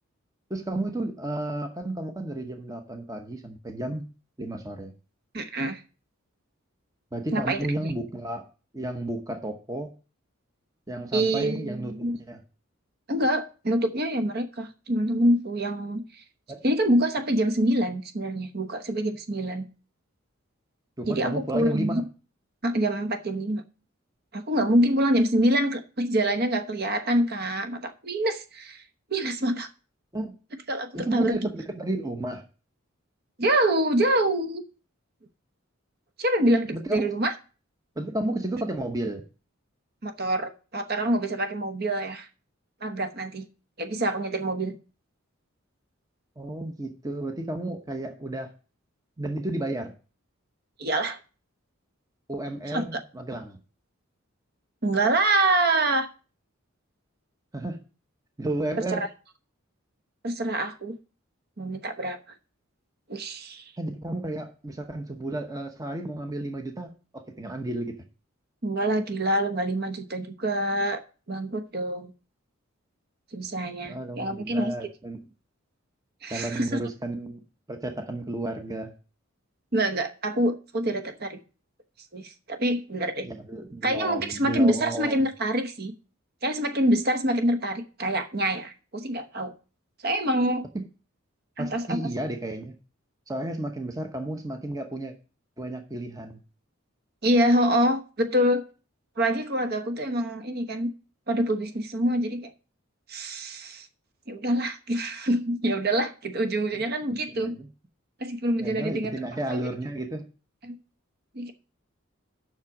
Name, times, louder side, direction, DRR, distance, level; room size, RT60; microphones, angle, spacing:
voice 1, 0.5-4.1 4.4-4.9 7.1-8.5 8.7-9.9 10.9-12.4 16.5-16.6 21.0-22.1 30.1-30.3 30.9-32.4 36.7-37.1 38.0-39.2 46.4-48.5 49.2-49.9 52.3-53.6 57.5-57.8 58.4-59.0 63.8-68.0 73.8-75.2 76.3-77.4 77.7-78.9 83.2-85.2 90.7-90.8 91.6-92.7 93.3-95.1 95.6-96.4 107.3-107.7 108.6-110.3, right 1 dB, 15° right, 0.9 m, -32 dB
voice 2, 5.3-5.8 7.3-7.9 11.1-12.2 13.1-16.0 16.6-19.7 21.1-22.0 22.6-23.6 24.3-28.8 29.1-29.7 30.7-31.4 33.4-34.6 36.2-37.3 40.0-42.3 42.8-43.5 43.8-44.8 50.8-51.2 52.7-53.0 54.8-56.1 58.9-59.0 60.2-61.0 61.6-62.2 63.1-63.6 68.6-71.0 71.3-72.1 73.3-74.7 76.2-76.8 79.7-81.4 82.1-83.3 83.8-85.9 86.4-89.5 90.0-90.7 91.6-92.0 97.2-98.6 99.2-100.9 101.3-102.5 103.1-103.9 104.3-107.6 108.2-109.1 109.5-109.6 110.6-110.8 111.3-111.5, right 1 dB, 45° right, 1.0 m, -26 dB
7.4 x 6.0 x 7.1 m
head